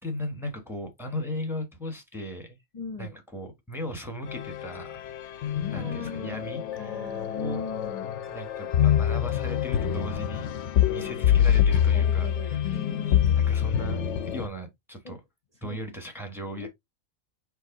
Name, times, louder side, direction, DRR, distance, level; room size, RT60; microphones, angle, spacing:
voice 1, 0.0-2.6 3.0-4.9 5.7-7.0 7.3-7.6 8.3-10.5 10.9-14.0 14.3-15.2 15.6-16.7, equal, ahead, 1.1 m, -37 dB
voice 2, 2.7-3.1 5.7-8.1 10.9-11.5 11.9-13.4 15.0-15.2 15.6-15.7 16.6-16.7, left 4 dB, 35° left, 0.8 m, -39 dB
sound 1, 4.3-14.5, left 9 dB, 70° left, 0.9 m, -25 dB
4.6 x 3.1 x 3.7 m
omnidirectional pair, 1.4 m